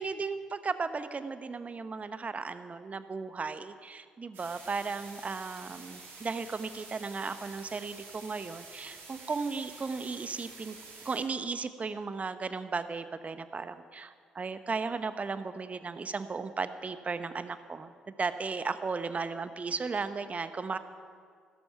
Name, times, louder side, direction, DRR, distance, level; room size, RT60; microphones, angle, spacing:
voice 1, 0.0-10.8 11.0-20.8, right 4 dB, 35° right, 11 dB, 1.0 m, -35 dB
sound 1, 4.3-11.2, right 4 dB, 65° right, 3.6 m, -49 dB
16.0 x 13.5 x 5.7 m, 2.1 s
hypercardioid pair, 40°, 4 cm